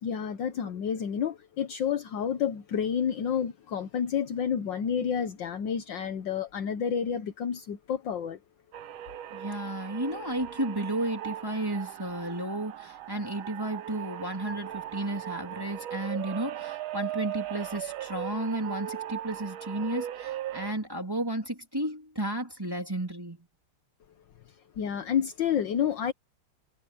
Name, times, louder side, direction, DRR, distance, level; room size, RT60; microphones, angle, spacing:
voice 1, 0.0-8.4 24.8-26.1, left 8 dB, 65° left, 1.7 m, -29 dB
sound 1, 8.7-20.7, right 12 dB, 85° right, 1.7 m, -38 dB
voice 2, 9.3-23.5, right 1 dB, 10° right, 3.3 m, -33 dB
omnidirectional pair, 2.2 m